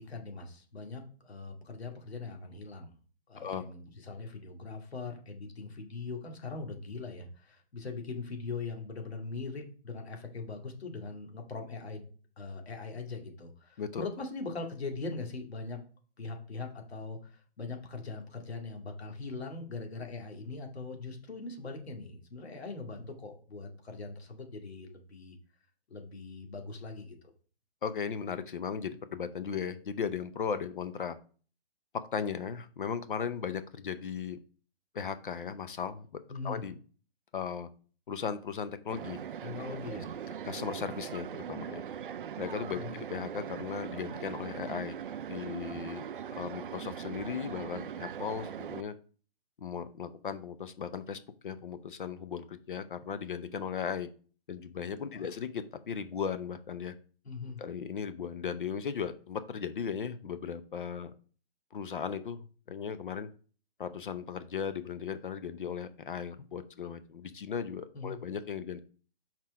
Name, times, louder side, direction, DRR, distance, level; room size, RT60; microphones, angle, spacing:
voice 1, 0.0-2.9 3.3-12.1 12.4-15.8 16.2-25.4 25.9-27.2 36.3-36.6 39.4-40.1 42.7-43.0 55.1-55.3 57.2-57.6 67.9-68.2, left 3 dB, 80° left, 3 dB, 2.2 m, -41 dB
voice 2, 27.8-31.2 31.9-34.4 34.9-36.1 36.4-36.8 37.3-37.7 38.1-39.2 40.4-41.8 42.4-45.0 45.3-46.0 46.4-48.9 49.6-54.1 54.5-57.0 57.6-61.1 61.7-63.3 63.8-68.8, left 7 dB, 55° left, 11 dB, 0.7 m, -37 dB
sound 1, 38.9-48.8, right 8 dB, 55° right, 0.5 m, -40 dB
6.0 x 4.4 x 4.7 m, 0.41 s
hypercardioid pair, 175°, 31 cm